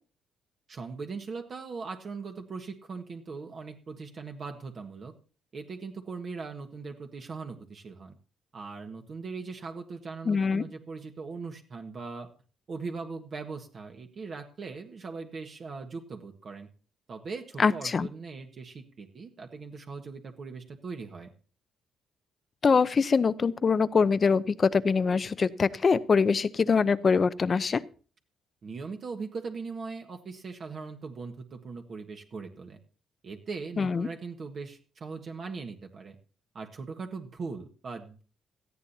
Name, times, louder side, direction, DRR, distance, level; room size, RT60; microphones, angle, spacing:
voice 1, 0.7-5.1 5.5-8.2 8.5-12.3 12.7-16.7 17.1-21.3 28.6-32.8 33.2-36.1 36.5-38.2, right 4 dB, 50° right, 4 dB, 1.5 m, -40 dB
voice 2, 10.3-10.6 17.6-18.1 22.6-27.8 33.8-34.1, left 5 dB, 40° left, 16 dB, 0.7 m, -24 dB
18.0 x 13.5 x 2.8 m, 0.38 s
cardioid pair, 90°, 0 cm